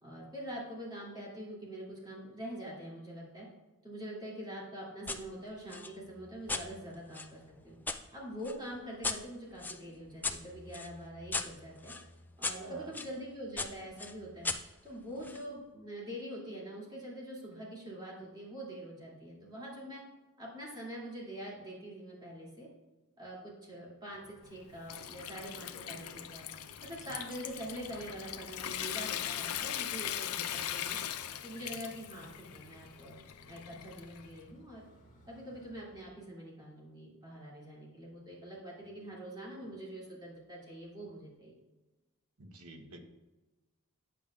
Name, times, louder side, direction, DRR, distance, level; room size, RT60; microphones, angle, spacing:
voice 1, 0.0-3.5 3.8-7.8 8.1-11.9 12.4-14.5 14.8-20.0 20.4-22.7 23.2-26.5 26.8-31.0 31.4-34.9 35.3-41.5, equal, 20° right, -5 dB, 2.5 m, -44 dB
sound 1, 5.1-5.2 5.7-8.0 8.4-13.1 13.6-15.4, left 3 dB, 10° left, 0.3 m, -39 dB
voice 2, 12.6-12.9 30.4-30.7 42.4-43.0, right 3 dB, 85° right, 5 dB, 1.0 m, -49 dB
sound 2, 24.0-36.1, equal, 40° left, 1.6 m, -62 dB
Water tap faucet / Sink (filling or washing) / Trickle dribble, 24.4-34.4, left 10 dB, 90° left, 0.5 m, -40 dB
8.8 x 8.0 x 2.4 m, 1.1 s
head